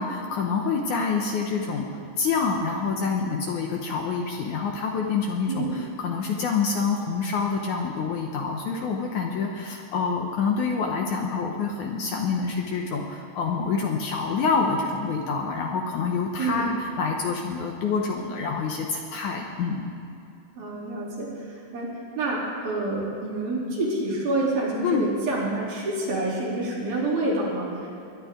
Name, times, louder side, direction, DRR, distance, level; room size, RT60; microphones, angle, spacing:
voice 1, 0.0-1.9 2.2-19.9 24.8-25.0, left 5 dB, 70° left, 1 dB, 2.0 m, -27 dB
voice 2, 20.6-21.3 21.7-21.9 22.2-27.9, right 2 dB, 75° right, -6 dB, 5.1 m, -27 dB
21.0 x 11.0 x 3.8 m, 2.6 s
omnidirectional pair, 4.2 m